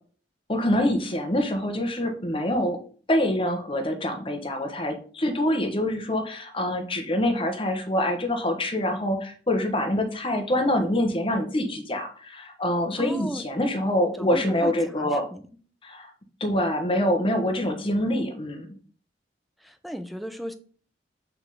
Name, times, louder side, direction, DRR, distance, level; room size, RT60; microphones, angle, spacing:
voice 1, 0.5-2.8 3.1-15.3 15.8-16.1 16.4-18.7, left 1 dB, 30° left, 3 dB, 1.2 m, -25 dB
voice 2, 13.0-13.4 14.2-15.4 19.6-20.5, equal, ahead, 7 dB, 0.6 m, -35 dB
5.9 x 3.7 x 5.4 m, 0.43 s
head